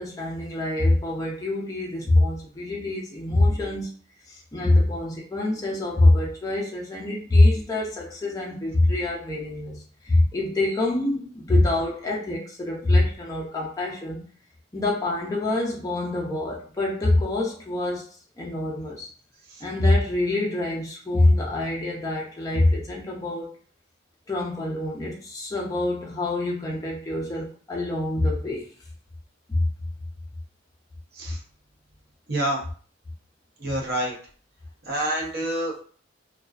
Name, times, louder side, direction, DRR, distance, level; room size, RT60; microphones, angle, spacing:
voice 1, 0.0-3.9 4.3-14.2 14.7-18.0 18.4-19.1 19.6-23.5 24.3-28.7 29.5-29.6, left 2 dB, 20° left, -3 dB, 0.5 m, -24 dB
voice 2, 32.3-32.6 33.6-34.1 34.9-35.7, right 1 dB, 55° right, -2 dB, 0.7 m, -27 dB
2.3 x 2.3 x 2.3 m, 0.43 s
head